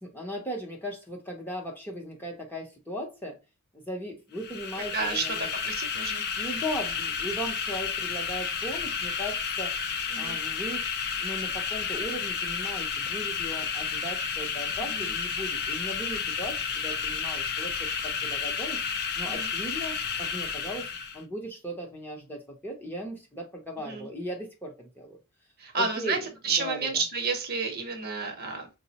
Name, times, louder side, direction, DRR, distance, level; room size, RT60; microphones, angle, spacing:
voice 1, 0.0-3.4 3.7-5.5 6.3-9.7 10.2-10.8 11.2-18.8 19.1-20.9 21.1-25.2 25.7-26.9, equal, 10° left, 0 dB, 0.7 m, -37 dB
sound 1, 4.3-21.2, left 6 dB, 45° left, 0.4 m, -31 dB
voice 2, 4.9-6.5 10.1-10.4 14.9-15.1 19.2-19.5 23.8-24.1 25.6-28.7, right 4 dB, 45° right, 4 dB, 0.7 m, -31 dB
4.6 x 2.0 x 2.8 m, 0.27 s
head